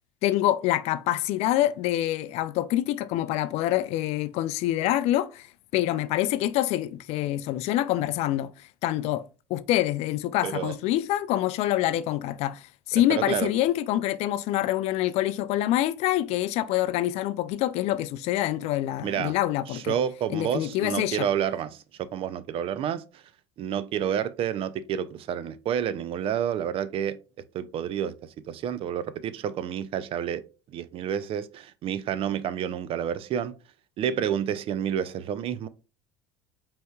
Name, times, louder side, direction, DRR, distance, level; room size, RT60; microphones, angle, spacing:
voice 1, 0.2-5.5 5.7-20.0 20.3-21.3, left 14 dB, 55° left, 0.4 m, -26 dB
voice 2, 10.4-10.8 12.9-13.5 19.0-19.4 19.7-21.8 22.1-23.0 23.6-27.2 27.5-28.1 28.5-30.4 30.7-33.5 34.0-35.7, right 9 dB, 45° right, 0.5 m, -29 dB
5.1 x 3.5 x 2.3 m
hypercardioid pair, 75°, 13 cm